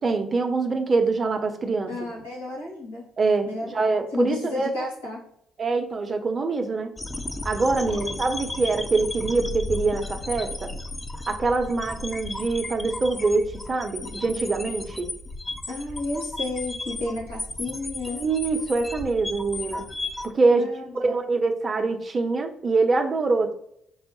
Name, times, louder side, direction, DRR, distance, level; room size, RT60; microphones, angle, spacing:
voice 1, 0.0-1.9 3.2-4.8 5.6-6.9 7.4-10.7 11.3-15.1 18.1-19.8 20.2-20.7 20.9-23.5, right 3 dB, 40° right, 5 dB, 0.7 m, -24 dB
voice 2, 1.9-3.0 3.5-5.2 7.9-8.2 15.7-18.2 20.5-21.1, left 2 dB, 90° left, -7 dB, 1.3 m, -32 dB
sound 1, 7.0-20.3, left 2 dB, 20° left, 0.6 m, -34 dB
5.4 x 2.0 x 3.0 m, 0.71 s
hypercardioid pair, 45°, 0 cm